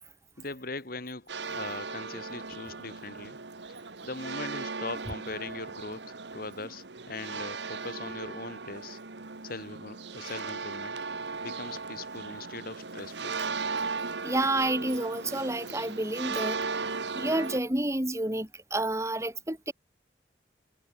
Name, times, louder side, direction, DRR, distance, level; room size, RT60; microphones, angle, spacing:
voice 1, 0.4-3.4 4.0-9.0 9.4-11.0 11.4-13.4, left 3 dB, 55° left, 2.5 m, -40 dB
sound 1, 1.3-17.6, right 4 dB, 75° right, 1.6 m, -37 dB
voice 2, 14.2-16.9 17.1-19.7, right 1 dB, 15° right, 3.2 m, -30 dB
head